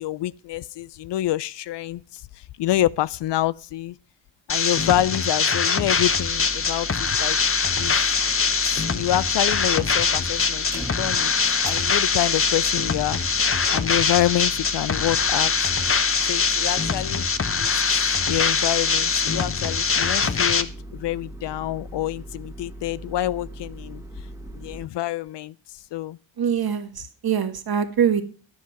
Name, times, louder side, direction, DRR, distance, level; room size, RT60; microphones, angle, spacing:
voice 1, 0.0-4.0 4.5-7.4 7.7-8.2 8.6-11.3 11.7-15.5 16.2-17.3 17.6-24.0 24.5-26.2, left 14 dB, 60° left, 0.5 m, -27 dB
sound 1, 4.5-20.6, left 5 dB, 30° left, 0.9 m, -23 dB
sound 2, 6.0-24.9, right 1 dB, 5° right, 2.0 m, -39 dB
voice 2, 26.4-28.2, right 8 dB, 50° right, 1.7 m, -23 dB
10.0 x 7.2 x 5.8 m
cardioid pair, 65°, 48 cm